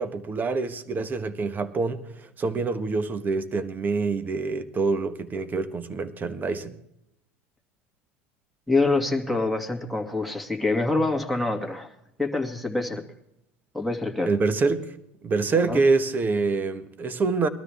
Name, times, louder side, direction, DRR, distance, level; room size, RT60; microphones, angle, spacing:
voice 1, 0.0-6.8 14.2-14.9 15.2-17.5, right 4 dB, 30° right, 1.3 m, -26 dB
voice 2, 8.7-11.9 12.2-13.0 13.7-14.3 15.7-15.8, left 3 dB, ahead, 2.2 m, -25 dB
21.5 x 13.0 x 3.5 m
hypercardioid pair, 90°, 6 cm